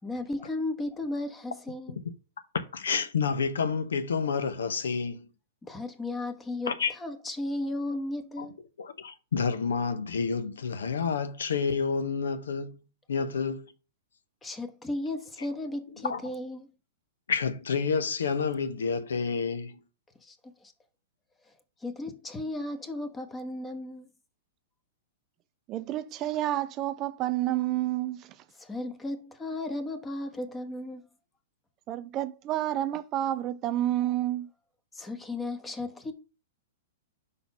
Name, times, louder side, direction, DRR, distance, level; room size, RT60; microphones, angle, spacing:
voice 1, 0.0-2.0 5.6-8.6 14.4-16.7 20.2-20.4 20.6-20.7 21.8-24.1 28.6-31.0 34.9-36.1, left 2 dB, 15° left, 1.2 m, -35 dB
voice 2, 2.5-5.3 6.7-6.9 8.4-8.5 8.8-12.8 13.1-13.7 16.0-16.2 17.3-19.8, left 5 dB, 75° left, 1.0 m, -29 dB
voice 3, 25.7-28.3 31.9-34.5, right 13 dB, 35° right, 0.4 m, -29 dB
5.5 x 4.1 x 5.4 m
hypercardioid pair, 115°, 0 cm